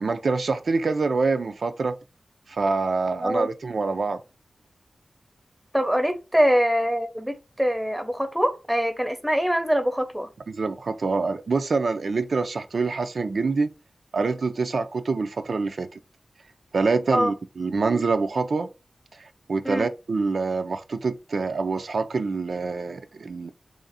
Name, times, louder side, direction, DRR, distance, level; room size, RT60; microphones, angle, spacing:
voice 1, 0.0-2.0 2.5-4.2 10.5-13.7 14.1-15.9 16.7-18.7 19.2-23.5, right 4 dB, 70° right, 0.3 m, -25 dB
voice 2, 5.7-10.3 17.1-17.3 19.6-19.9, equal, 5° right, 0.7 m, -23 dB
3.3 x 2.5 x 4.0 m
wide cardioid pair, 75°, 0 cm